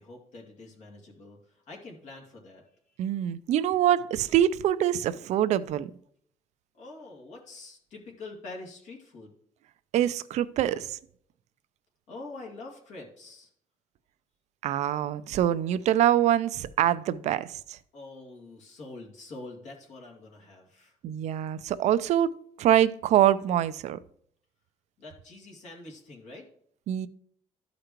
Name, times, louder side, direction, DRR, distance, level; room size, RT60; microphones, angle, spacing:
voice 1, 0.0-2.6 6.7-9.3 12.1-13.5 17.9-21.0 25.0-26.5, left 2 dB, 70° left, 2.2 m, -45 dB
voice 2, 3.0-5.9 9.9-11.0 14.6-17.8 21.0-24.0 26.9-27.1, right 11 dB, 65° right, 0.5 m, -25 dB
12.5 x 5.1 x 3.0 m
cardioid pair, 120°, 13 cm